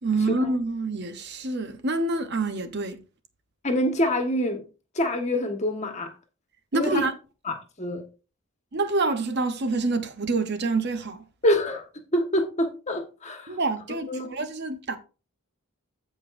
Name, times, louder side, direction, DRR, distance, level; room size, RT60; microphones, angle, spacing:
voice 1, 0.0-3.0 6.7-7.1 8.7-11.3 13.5-15.0, right 3 dB, 50° right, 0.9 m, -27 dB
voice 2, 3.6-4.6 4.9-6.1 6.7-7.1 7.5-8.0 11.4-11.8 12.1-13.6 14.1-14.4, left 1 dB, 30° left, 1.4 m, -26 dB
15.0 x 5.2 x 2.6 m
head